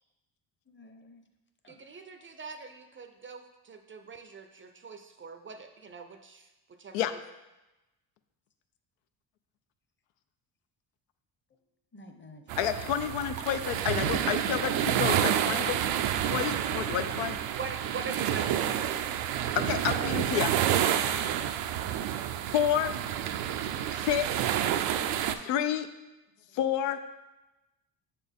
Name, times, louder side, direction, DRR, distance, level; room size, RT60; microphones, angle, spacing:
voice 1, 0.7-1.2 1.6-1.8 11.9-12.4 19.3-19.5, left 1 dB, 25° left, 6 dB, 0.8 m, -54 dB
voice 2, 1.7-7.1 17.5-19.1, right 4 dB, 30° right, 7 dB, 0.5 m, -43 dB
sound 1, 12.5-25.4, right 10 dB, 80° right, 0.5 m, -29 dB
voice 3, 12.6-15.9 16.2-17.4 19.6-20.5 22.5-23.0 23.9-24.4 25.4-25.9 26.5-27.0, left 10 dB, 85° left, 9 dB, 0.5 m, -29 dB
6.8 x 4.2 x 3.5 m, 1.0 s
supercardioid pair, 75°, 44 cm